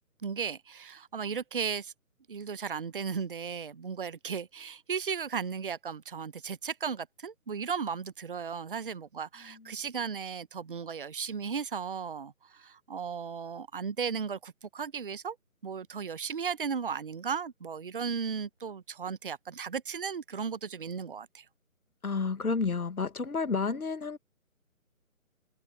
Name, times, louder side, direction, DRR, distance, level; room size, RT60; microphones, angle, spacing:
voice 1, 0.2-1.9 2.3-15.4 15.6-21.4, right 6 dB, 40° right, 0.7 m, -35 dB
voice 2, 22.0-24.2, left 4 dB, 85° left, 1.4 m, -31 dB
figure-of-eight pair, 155°, 43 cm